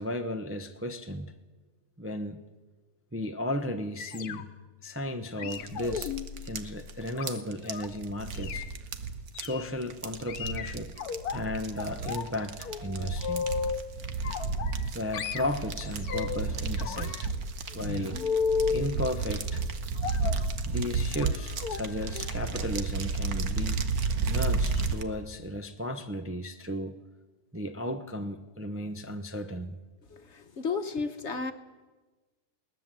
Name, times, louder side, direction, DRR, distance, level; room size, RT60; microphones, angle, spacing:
voice 1, 0.0-1.3 2.0-2.4 3.1-4.5 4.8-6.1 6.4-8.7 9.4-10.9 11.3-13.5 14.9-17.3 17.7-18.2 18.7-19.6 20.6-23.8 24.3-27.0 27.5-29.8, left 1 dB, 15° right, 0.6 m, -34 dB
sound 1, 4.1-4.7 5.4-7.9 8.3-8.7 9.3-9.6 10.3-11.4 11.8-12.3 12.6-13.8 14.2-14.9 15.1-16.4 16.8-18.8 20.0-20.5 21.1-21.3 21.6-21.8 22.1-22.3 22.6-22.7, left 6 dB, 80° left, 1.5 m, -34 dB
sound 2, 5.5-25.0, right 4 dB, 75° right, 1.6 m, -32 dB
voice 2, 30.1-31.5, left 4 dB, 50° left, 1.3 m, -33 dB
20.5 x 19.0 x 7.6 m
omnidirectional pair, 1.6 m